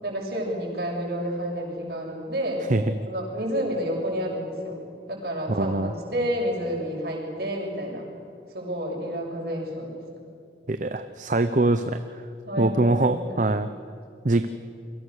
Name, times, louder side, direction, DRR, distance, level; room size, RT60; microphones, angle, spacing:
voice 1, 0.0-2.7 3.1-4.8 5.1-8.0 8.5-10.0 12.5-13.4, equal, 60° right, 0 dB, 6.7 m, -30 dB
voice 2, 5.5-5.9 10.7-12.2 12.6-13.7 14.2-14.5, right 2 dB, 45° right, 10 dB, 0.8 m, -23 dB
29.5 x 23.0 x 6.5 m, 2.6 s
head